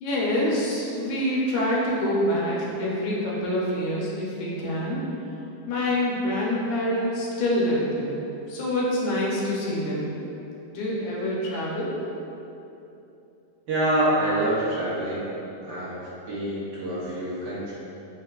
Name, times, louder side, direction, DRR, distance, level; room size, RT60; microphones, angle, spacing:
voice 1, 0.0-5.0 5.7-8.2 8.5-10.1 10.7-12.1, left 1 dB, 90° left, -4 dB, 2.3 m, -26 dB
voice 2, 13.7-15.3 15.6-16.0 16.3-17.7, right 1 dB, 65° right, -9 dB, 1.0 m, -26 dB
4.9 x 4.4 x 2.4 m, 2.9 s
omnidirectional pair, 3.3 m